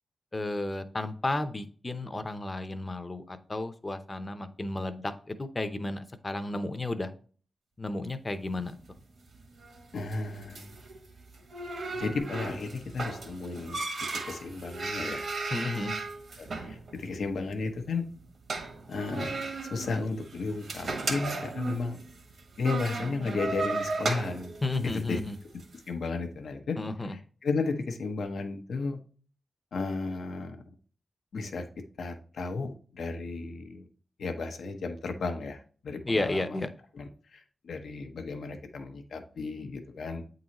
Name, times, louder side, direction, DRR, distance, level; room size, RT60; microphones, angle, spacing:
voice 1, 0.3-7.1 7.8-8.7 15.5-16.0 24.6-25.4 26.8-27.1 36.0-36.7, left 2 dB, 30° left, 10 dB, 0.7 m, -32 dB
sound 1, 8.5-25.8, right 3 dB, 75° right, 1.5 m, -36 dB
voice 2, 9.9-10.7 11.9-13.8 14.1-15.3 16.4-18.0 18.9-22.0 22.6-24.5 24.8-25.2 25.9-26.8 27.0-29.0 29.7-30.6 31.3-31.6 32.0-33.9 34.2-35.6 35.8-36.6 36.9-37.0 37.3-40.2, left 3 dB, 85° left, 5 dB, 0.9 m, -34 dB
8.4 x 3.9 x 2.9 m, 0.42 s
wide cardioid pair, 95°, 0 cm